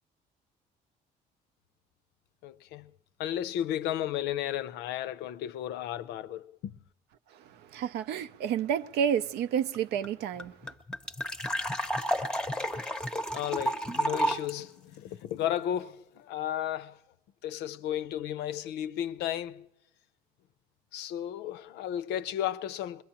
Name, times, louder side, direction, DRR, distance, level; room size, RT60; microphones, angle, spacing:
voice 1, 2.4-2.9 3.2-6.7 13.3-17.0 17.4-19.7 20.9-23.0, left 11 dB, 80° left, 0.5 m, -34 dB
voice 2, 7.3-10.7, right 8 dB, 80° right, 0.5 m, -30 dB
sound 1, 9.7-9.8 10.0-10.1 10.4-14.5, equal, 5° left, 0.7 m, -31 dB
22.0 x 21.5 x 2.9 m
cardioid pair, 110°, 17 cm